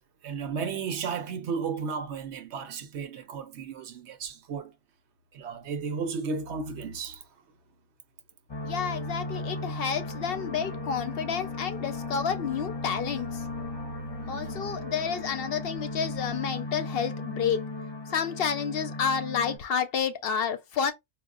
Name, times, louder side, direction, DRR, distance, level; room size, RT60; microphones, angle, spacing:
voice 1, 0.2-4.7 5.3-7.2, right 5 dB, 85° right, 0.9 m, -34 dB
sound 1, 8.5-19.6, left 2 dB, 30° left, 0.6 m, -36 dB
voice 2, 8.6-13.4 14.3-17.6 18.1-20.9, left 7 dB, 65° left, 0.7 m, -30 dB
4.2 x 2.3 x 2.4 m
omnidirectional pair, 1.1 m